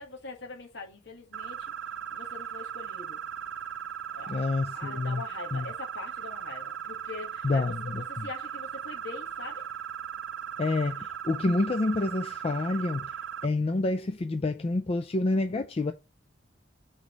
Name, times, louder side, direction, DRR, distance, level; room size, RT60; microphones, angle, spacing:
voice 1, 0.0-1.7 2.1-3.2 4.1-4.5 4.7-9.6, left 3 dB, 70° left, 1.9 m, -43 dB
sound 1, 1.3-13.5, right 8 dB, 70° right, 0.5 m, -38 dB
voice 2, 4.3-5.2 5.5-5.6 7.4-8.2 10.6-13.1 13.4-15.9, left 2 dB, 30° left, 0.4 m, -28 dB
5.0 x 4.1 x 5.1 m
head